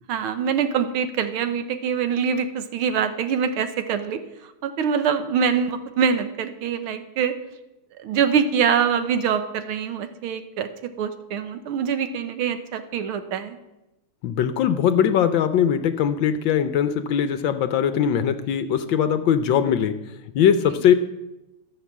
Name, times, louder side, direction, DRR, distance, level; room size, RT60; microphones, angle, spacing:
voice 1, 0.1-4.2 4.6-7.4 8.0-13.6, right 7 dB, 80° right, 9 dB, 1.7 m, -24 dB
voice 2, 14.2-19.9 20.3-20.9, left 8 dB, 70° left, 10 dB, 1.2 m, -20 dB
14.5 x 5.9 x 7.3 m, 0.97 s
omnidirectional pair, 2.4 m